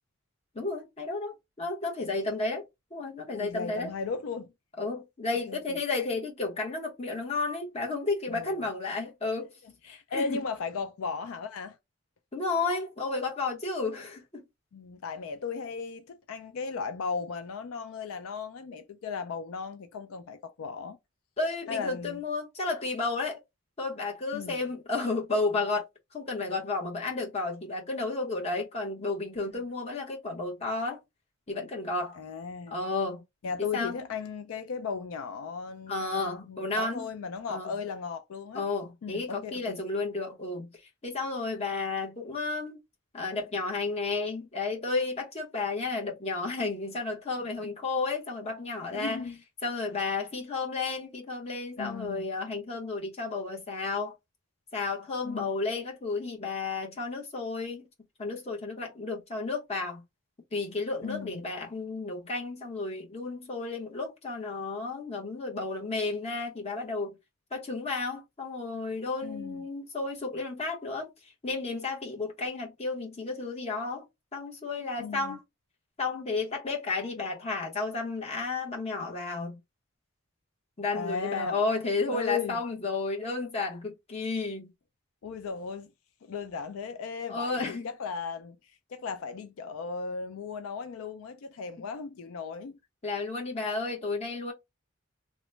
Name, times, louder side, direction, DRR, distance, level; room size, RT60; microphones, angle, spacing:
voice 1, 0.5-2.6 2.9-3.9 4.8-9.5 9.8-10.4 12.3-14.4 21.4-23.4 23.8-25.8 26.1-31.0 31.5-32.2 32.7-33.2 33.7-33.9 35.9-37.1 37.5-37.7 38.5-40.7 41.0-42.8 43.1-49.2 49.6-54.1 54.7-57.9 58.2-60.0 60.5-67.1 67.5-74.1 74.3-75.4 76.0-79.6 80.8-84.7 87.3-87.9 93.0-94.5, left 3 dB, 30° left, 0.9 m, -32 dB
voice 2, 3.3-4.5 5.5-5.6 8.3-8.6 9.6-11.8 14.7-21.0 21.7-22.2 24.3-24.6 29.5-29.6 32.1-32.8 33.4-38.6 39.0-39.8 48.9-49.4 51.8-52.2 55.2-55.5 61.0-61.4 69.2-69.6 75.0-75.4 80.9-81.6 82.1-82.6 85.2-85.9 86.2-92.8, left 5 dB, 75° left, 0.4 m, -36 dB
3.0 x 2.1 x 3.1 m
head